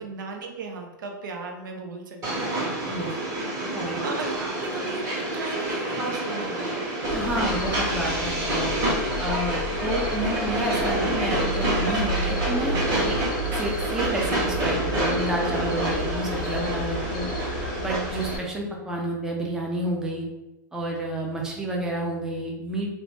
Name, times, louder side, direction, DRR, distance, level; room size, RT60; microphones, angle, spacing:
voice 1, 0.0-2.6 3.8-6.7, right 4 dB, 75° right, 2 dB, 0.5 m, -36 dB
Train, 2.2-18.4, right 1 dB, 30° right, 1.0 m, -28 dB
sound 1, 7.0-18.4, left 1 dB, 85° left, 0.4 m, -32 dB
voice 2, 7.1-8.7 9.2-13.2 13.5-17.3 17.8-20.3 20.7-22.9, right 1 dB, 5° right, -2 dB, 0.4 m, -30 dB
2.6 x 2.0 x 3.1 m, 1.0 s
hypercardioid pair, 135°, 11 cm